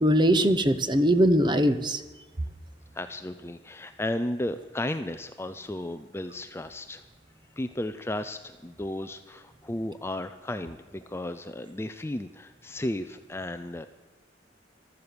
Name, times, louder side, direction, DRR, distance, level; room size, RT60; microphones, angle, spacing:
voice 1, 0.0-2.0, equal, 25° right, 11 dB, 0.9 m, -21 dB
voice 2, 2.9-7.0 7.6-13.9, left 1 dB, 15° left, 9 dB, 0.5 m, -34 dB
15.0 x 12.5 x 6.9 m, 1.3 s
head